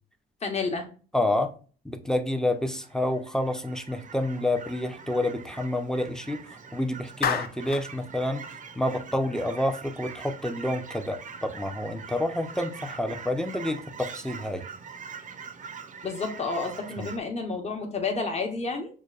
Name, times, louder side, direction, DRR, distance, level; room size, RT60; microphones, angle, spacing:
voice 1, 0.4-0.9 16.0-18.9, left 4 dB, 35° left, 1.1 m, -30 dB
voice 2, 1.1-1.5 1.8-8.5 8.8-14.6 17.0-17.1, left 1 dB, 5° left, 0.6 m, -29 dB
Fowl / Chirp tweet, 2.4-17.2, right 6 dB, 40° right, 0.6 m, -43 dB
Clapping, 7.2-7.9, left 7 dB, 50° left, 0.5 m, -28 dB
6.2 x 2.2 x 2.4 m
cardioid pair, 90°, 20 cm